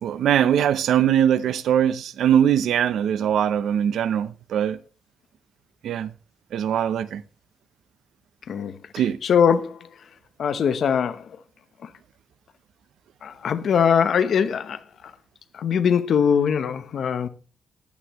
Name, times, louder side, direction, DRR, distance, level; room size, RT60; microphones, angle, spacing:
voice 1, 0.0-4.8 5.8-6.1 6.5-7.2 8.9-9.2, right 9 dB, 80° right, 0.6 m, -21 dB
voice 2, 8.5-8.8 9.2-9.9 10.4-11.3 11.8-11.9 13.2-14.8 15.5-17.3, left 7 dB, 60° left, 0.9 m, -21 dB
15.5 x 11.5 x 3.1 m
cardioid pair, 125°, 0 cm